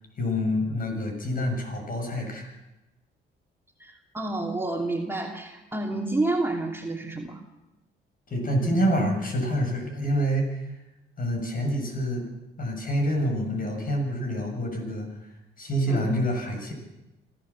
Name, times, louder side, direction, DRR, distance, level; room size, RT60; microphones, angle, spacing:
voice 1, 0.2-2.5 8.3-10.7 11.2-12.2 12.6-15.3 15.6-16.7, equal, 45° left, 3 dB, 7.4 m, -27 dB
voice 2, 3.8-7.4 15.9-16.1, right 2 dB, 10° right, 0 dB, 2.8 m, -29 dB
26.5 x 15.0 x 7.3 m, 0.99 s
cardioid pair, 90°, 20 cm